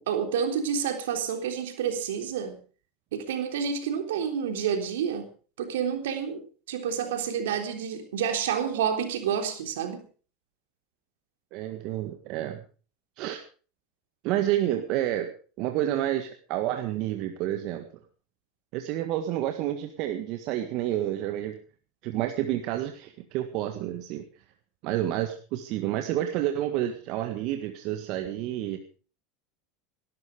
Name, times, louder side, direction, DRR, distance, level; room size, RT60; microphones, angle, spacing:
voice 1, 0.0-2.6 3.1-5.3 5.6-6.4 6.7-10.0, right 7 dB, 80° right, 5 dB, 3.6 m, -29 dB
voice 2, 11.5-12.6 13.2-13.4 14.2-15.3 15.6-17.9 18.7-21.6 22.0-24.2 24.8-28.8, right 12 dB, 60° right, 6 dB, 1.7 m, -29 dB
18.0 x 12.5 x 5.1 m, 0.40 s
hypercardioid pair, 90°, 0 cm